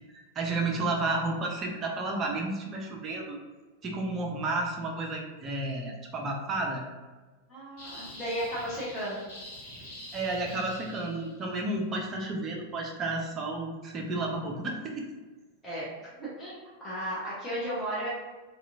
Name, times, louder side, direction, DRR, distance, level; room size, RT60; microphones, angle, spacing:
voice 1, 0.4-3.4 3.8-6.8 10.1-15.1, right 2 dB, 25° right, 0 dB, 0.5 m, -31 dB
voice 2, 7.5-9.2 15.6-15.9 16.2-18.1, equal, 15° left, -10 dB, 0.9 m, -34 dB
sound 1, 7.8-11.5, left 1 dB, 45° left, 1.0 m, -45 dB
3.0 x 2.3 x 2.5 m, 1.3 s
figure-of-eight pair, 90°, 0 cm